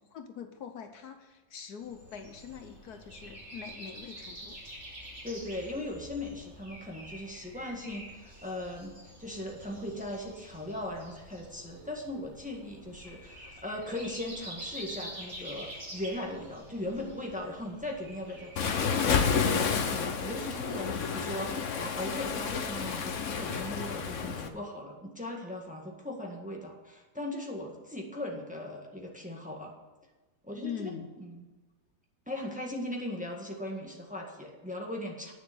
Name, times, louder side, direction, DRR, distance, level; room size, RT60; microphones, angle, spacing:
voice 1, 0.0-4.6 13.0-13.6 30.6-31.1, left 7 dB, 70° left, 7 dB, 1.4 m, -43 dB
Breathing, 1.8-19.6, right 1 dB, 40° right, 3.4 m, -47 dB
voice 2, 5.2-29.7 30.4-30.9 31.2-31.4 32.3-35.3, left 1 dB, 5° right, -1 dB, 1.6 m, -38 dB
Waves surf, 18.6-24.5, left 6 dB, 55° left, 1.1 m, -30 dB
9.6 x 6.9 x 7.9 m, 1.2 s
omnidirectional pair, 1.8 m